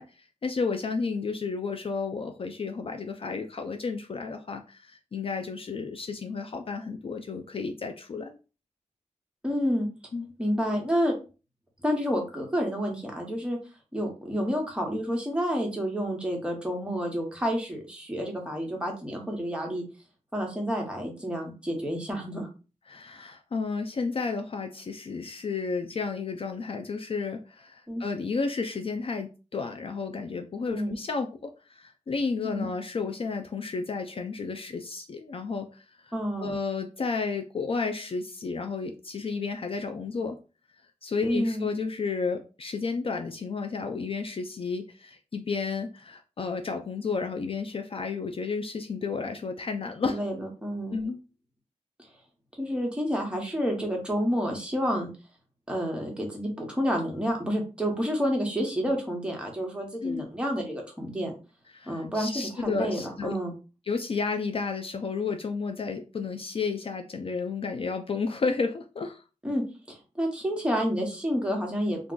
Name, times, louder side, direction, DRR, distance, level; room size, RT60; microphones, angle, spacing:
voice 1, 0.0-8.4 10.1-10.3 22.9-36.1 36.4-40.4 41.0-50.2 50.9-51.2 60.0-60.3 61.7-63.4 63.9-69.2, left 4 dB, 50° left, 5 dB, 0.4 m, -32 dB
voice 2, 9.4-9.9 10.4-11.1 11.8-13.6 13.9-19.8 20.3-22.5 27.9-28.0 30.7-31.0 32.4-32.7 36.1-36.5 41.2-41.7 50.0-51.0 52.6-55.1 55.7-61.3 61.9-63.5 69.4-69.6 69.9-72.1, equal, 10° right, 1 dB, 0.9 m, -29 dB
2.4 x 2.2 x 3.7 m, 0.33 s
wide cardioid pair, 100°, 12 cm